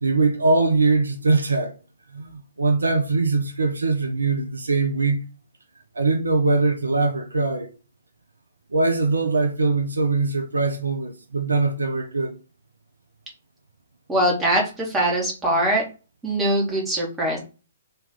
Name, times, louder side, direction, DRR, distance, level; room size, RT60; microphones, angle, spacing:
voice 1, 0.0-1.8 2.1-5.3 5.9-7.8 8.7-12.4, right 3 dB, 70° right, 0.6 m, -22 dB
voice 2, 14.1-15.8 16.2-17.4, right 1 dB, 10° right, 1.5 m, -22 dB
3.3 x 3.0 x 3.5 m
figure-of-eight pair, 125°, 0 cm